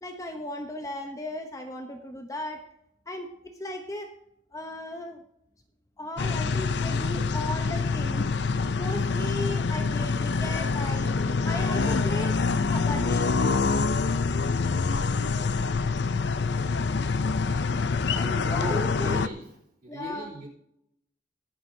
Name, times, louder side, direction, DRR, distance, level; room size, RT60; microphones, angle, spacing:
voice 1, 0.0-2.6 3.1-4.1 4.5-5.2 6.0-8.3 8.8-11.2 11.5-12.4 12.7-13.4 18.1-19.2 19.9-20.3, left 1 dB, 15° left, 4 dB, 0.9 m, -36 dB
sound 1, 6.2-19.3, left 4 dB, 65° left, 0.5 m, -26 dB
voice 2, 18.5-19.4 19.8-20.5, equal, 50° right, -4 dB, 3.7 m, -37 dB
22.5 x 7.6 x 2.8 m, 0.77 s
head